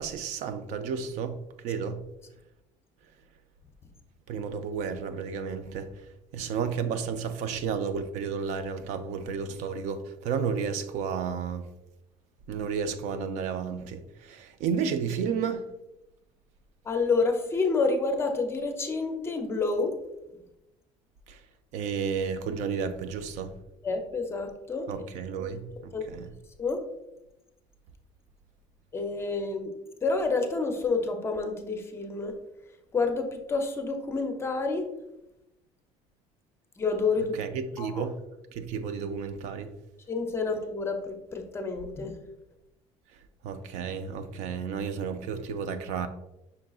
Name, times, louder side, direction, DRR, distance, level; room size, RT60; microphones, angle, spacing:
voice 1, 0.0-2.0 4.3-5.9 6.3-11.7 12.5-15.7 21.3-21.4 21.7-23.5 24.9-26.3 37.4-38.2 38.5-39.7 43.4-46.1, right 6 dB, 65° right, 0.4 m, -32 dB
voice 2, 16.8-19.9 23.8-24.9 25.9-26.1 26.6-26.8 28.9-29.7 30.0-32.3 32.9-34.8 36.8-37.4 37.8-38.1 40.1-42.2, left 4 dB, 20° left, 0.5 m, -28 dB
5.6 x 3.7 x 2.3 m
cardioid pair, 145°, 13 cm